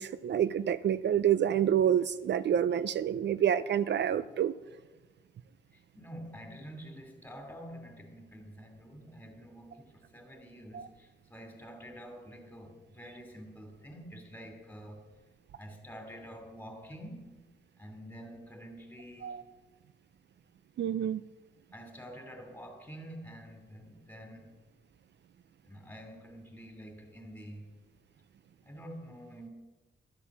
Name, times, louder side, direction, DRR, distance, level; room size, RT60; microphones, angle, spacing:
voice 1, 0.0-4.5 10.7-10.9 19.2-19.4 20.8-21.2, right 9 dB, 65° right, 14 dB, 0.4 m, -28 dB
voice 2, 5.7-15.0 15.5-17.3 17.8-19.4 21.7-24.6 25.6-27.7 28.6-29.5, equal, 10° left, 3 dB, 2.8 m, -48 dB
12.5 x 8.4 x 7.3 m, 1.2 s
cardioid pair, 100°, 20 cm